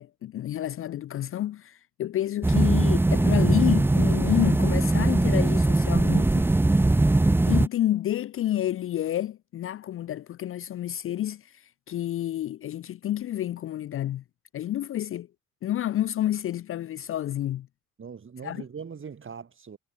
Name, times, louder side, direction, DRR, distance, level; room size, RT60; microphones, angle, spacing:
voice 1, 0.0-6.5 7.5-14.2 14.5-15.3 15.6-17.7 18.4-18.6, left 12 dB, 45° left, 0.4 m, -29 dB
sound 1, 2.4-7.7, right 2 dB, 10° right, 0.5 m, -21 dB
voice 2, 18.0-19.8, right 6 dB, 40° right, 6.1 m, -41 dB
cardioid pair, 90°, 30 cm